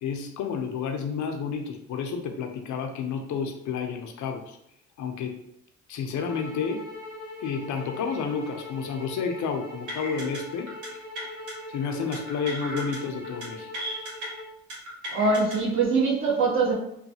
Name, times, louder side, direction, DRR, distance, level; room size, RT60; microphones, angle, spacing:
voice 1, 0.0-4.6 5.0-5.4 5.9-6.9 7.4-11.0 11.7-13.7, left 5 dB, 70° left, 5 dB, 0.6 m, -31 dB
sound 1, 6.2-14.5, left 2 dB, 15° right, 1.4 m, -41 dB
sound 2, 9.9-10.4 10.7-10.9 11.2-11.5 12.1-13.0 13.2-13.5 13.7-14.3 14.7-15.6, right 1 dB, 85° right, 1.2 m, -35 dB
voice 2, 15.1-16.7, right 4 dB, 45° right, -6 dB, 1.2 m, -23 dB
3.1 x 2.2 x 2.7 m, 0.75 s
cardioid pair, 90°, 30 cm